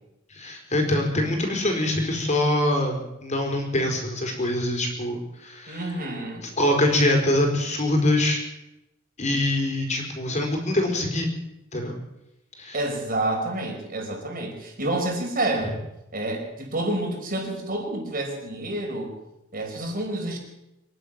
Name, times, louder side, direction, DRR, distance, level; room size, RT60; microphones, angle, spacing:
voice 1, 0.3-5.8 6.4-8.4 9.2-11.3 11.7-12.0 12.6-12.8, left 1 dB, 35° left, 3 dB, 4.9 m, -24 dB
voice 2, 5.7-6.5 12.7-15.8 16.1-19.1 19.5-20.4, right 1 dB, 45° right, 2 dB, 5.1 m, -28 dB
25.0 x 11.5 x 9.0 m, 0.90 s
head